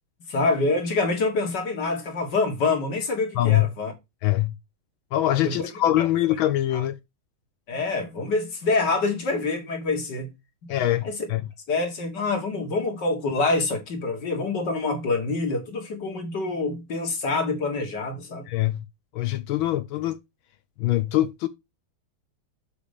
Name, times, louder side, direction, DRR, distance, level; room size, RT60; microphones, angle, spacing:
voice 1, 0.3-3.9 5.4-5.7 6.7-6.8 7.7-10.3 11.0-11.2 11.7-18.5, left 3 dB, 55° left, 2.3 m, -26 dB
voice 2, 3.4-3.7 4.2-4.5 5.1-7.0 10.7-11.4 18.5-18.9 19.1-20.2 20.8-21.5, left 14 dB, 75° left, 1.3 m, -23 dB
7.0 x 4.9 x 5.0 m
omnidirectional pair, 2.4 m